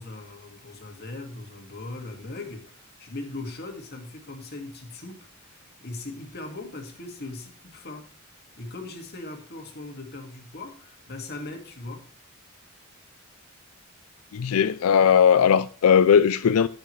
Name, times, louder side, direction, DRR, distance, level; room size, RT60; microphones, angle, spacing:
voice 1, 0.0-8.1 8.6-12.1, left 2 dB, 50° left, 2.0 m, -39 dB
voice 2, 14.3-16.7, left 7 dB, 90° left, 0.4 m, -18 dB
16.0 x 6.4 x 3.2 m
head